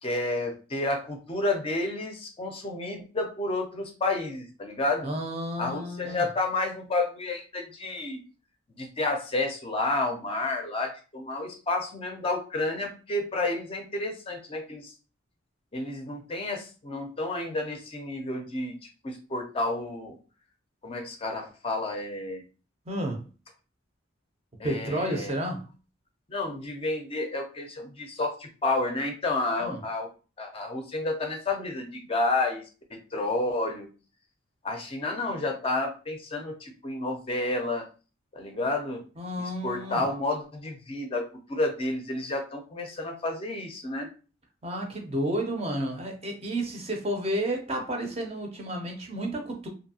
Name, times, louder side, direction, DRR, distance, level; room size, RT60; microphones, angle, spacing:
voice 1, 0.0-5.1 5.6-8.2 8.7-14.9 15.7-18.8 19.0-20.2 20.8-22.4 24.6-25.3 26.3-30.1 30.4-32.6 32.9-33.9 34.6-37.9 38.3-39.0 39.4-44.1, left 2 dB, 30° left, 0.5 m, -30 dB
voice 2, 5.0-6.2 22.9-23.3 24.6-25.7 29.6-29.8 39.2-40.0 44.6-49.7, right 1 dB, 30° right, 0.5 m, -31 dB
2.7 x 2.6 x 2.7 m
head